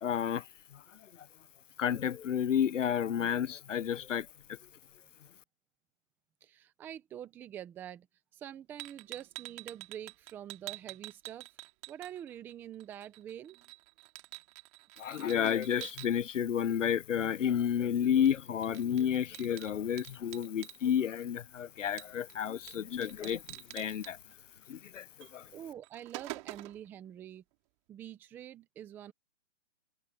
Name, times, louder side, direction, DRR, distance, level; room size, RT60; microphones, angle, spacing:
voice 1, 0.0-0.4 0.7-0.8 1.8-4.6 15.0-23.4 23.7-24.2 24.7-25.5, left 9 dB, 75° left, 0.8 m, -31 dB
voice 2, 6.4-8.1 8.3-11.5 11.9-13.6 20.4-20.5 25.5-27.4 27.9-29.1, right 10 dB, 5° right, 0.7 m, -46 dB
sound 1, 8.8-12.5 12.8-16.1 18.3-18.4 18.6-20.8 22.0-22.3 22.7-22.8 23.0-24.1 25.2-25.3 25.7-26.9, right 27 dB, 25° right, 2.8 m, -46 dB
hypercardioid pair, 155°, 38 cm